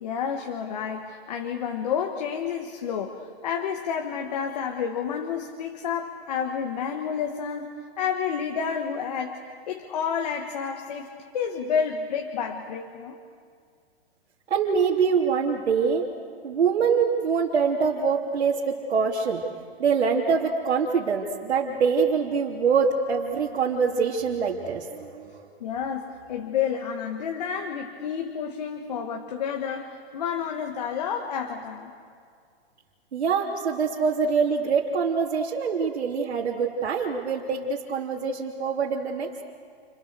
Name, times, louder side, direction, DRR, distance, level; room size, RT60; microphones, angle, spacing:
voice 1, 0.0-7.7 8.0-11.1 11.3-13.2 25.6-31.9, left 7 dB, 40° left, 3 dB, 1.7 m, -30 dB
voice 2, 14.5-16.1 16.4-19.4 19.8-25.5 33.1-39.4, right 5 dB, 85° right, -4 dB, 3.3 m, -24 dB
29.5 x 28.5 x 6.9 m, 2.2 s
hypercardioid pair, 175°, 32 cm